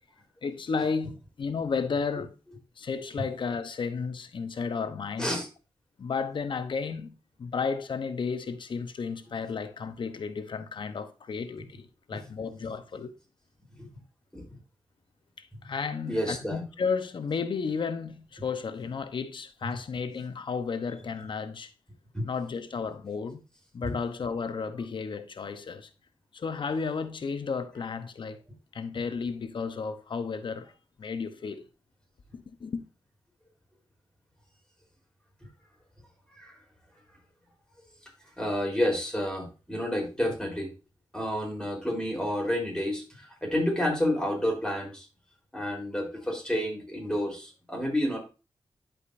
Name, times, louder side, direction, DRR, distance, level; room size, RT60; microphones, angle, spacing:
voice 1, 0.4-2.3 2.8-5.3 6.0-13.1 15.4-21.7 22.2-23.4 23.7-25.9 26.3-28.4 28.7-30.7 31.0-31.6 32.3-32.8, left 5 dB, 65° left, 0.8 m, -33 dB
voice 2, 16.1-16.6 22.1-22.3 23.8-23.9 36.3-36.5 38.4-40.7 41.1-45.0 45.5-48.2, left 1 dB, 10° left, 3.8 m, -30 dB
11.0 x 5.0 x 2.6 m
cardioid pair, 40°, 9 cm